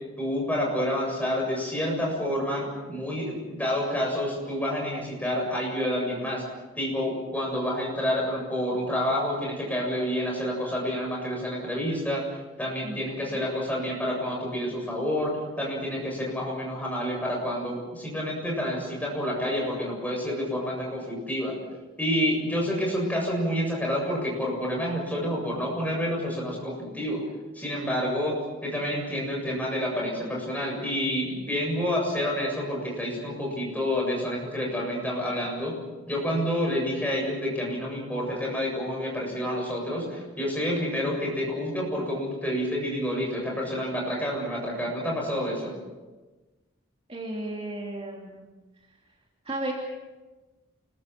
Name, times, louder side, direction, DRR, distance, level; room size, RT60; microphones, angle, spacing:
voice 1, 0.2-6.4 6.8-12.2 12.6-21.6 22.0-27.2 27.5-28.4 28.6-35.8 36.1-45.7, equal, 10° left, -2 dB, 7.5 m, -28 dB
voice 2, 12.8-13.5 47.1-48.4 49.4-49.7, right 1 dB, 30° right, -2 dB, 2.9 m, -34 dB
28.5 x 22.0 x 6.1 m, 1.2 s
head